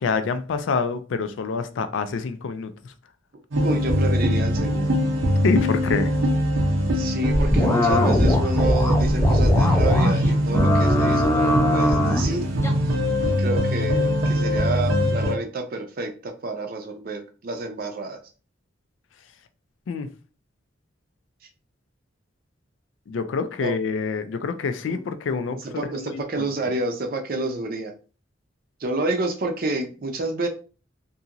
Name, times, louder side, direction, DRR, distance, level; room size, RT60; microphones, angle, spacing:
voice 1, 0.0-2.9 5.4-6.1 19.9-20.1 23.1-26.5, left 4 dB, 80° left, 0.4 m, -26 dB
sound 1, 3.5-15.3, equal, 90° right, 0.6 m, -22 dB
voice 2, 3.6-5.0 6.9-12.5 13.4-18.2 23.6-23.7 24.9-25.0 25.5-27.9 28.8-30.5, right 2 dB, 50° right, 0.5 m, -29 dB
sound 2, 7.3-10.3 10.5-12.3 12.6-12.7, left 1 dB, 15° left, 0.4 m, -21 dB
2.8 x 2.6 x 2.4 m
head